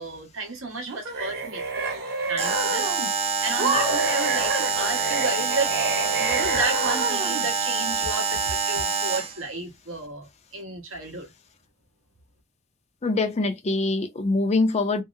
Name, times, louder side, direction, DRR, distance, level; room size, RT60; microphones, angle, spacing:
voice 1, 0.0-2.0 2.3-2.9 3.4-5.7 6.2-11.3, right 3 dB, 85° right, 1.1 m, -32 dB
sound 1, 0.9-3.1 3.6-7.5, right 3 dB, 55° right, 0.9 m, -28 dB
Alarm, 2.4-9.4, right 4 dB, 30° right, 0.5 m, -26 dB
voice 2, 13.0-15.0, left 3 dB, 35° left, 0.5 m, -24 dB
2.8 x 2.0 x 2.4 m
head